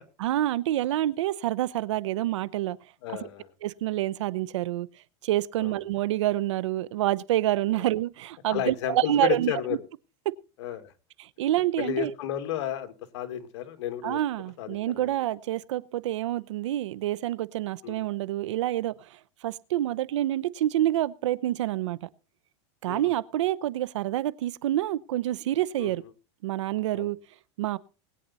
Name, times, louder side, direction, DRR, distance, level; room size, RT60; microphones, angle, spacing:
voice 1, 0.2-2.8 3.6-4.9 5.2-9.5 10.2-10.3 11.2-12.1 14.0-22.1 22.8-26.0 26.4-27.2 27.6-27.8, right 14 dB, 90° right, 0.8 m, -27 dB
voice 2, 3.0-3.5 5.6-5.8 8.5-9.8 10.6-10.9 11.8-14.2 14.6-15.1 17.8-18.1 22.8-23.1 25.8-25.9 26.9-27.1, left 11 dB, 70° left, 2.1 m, -32 dB
20.0 x 9.4 x 4.1 m
supercardioid pair, 145°, 15 cm